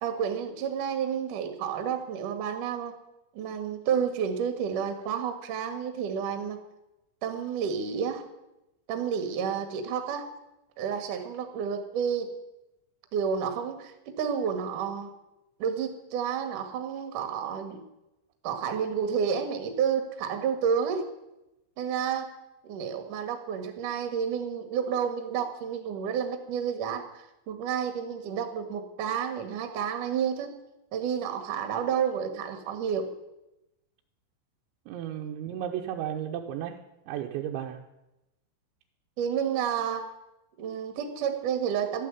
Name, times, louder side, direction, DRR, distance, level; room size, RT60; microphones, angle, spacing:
voice 1, 0.0-2.9 3.3-6.6 7.2-8.2 8.9-10.3 10.8-12.3 13.1-15.1 15.6-17.8 18.4-21.0 21.8-22.3 22.6-30.5 30.9-33.1 39.2-40.1 40.6-42.1, right 7 dB, 60° right, 7 dB, 2.4 m, -30 dB
voice 2, 34.9-36.8 37.1-37.8, right 10 dB, 75° right, 2 dB, 2.9 m, -34 dB
13.5 x 11.5 x 9.5 m, 0.94 s
omnidirectional pair, 6.0 m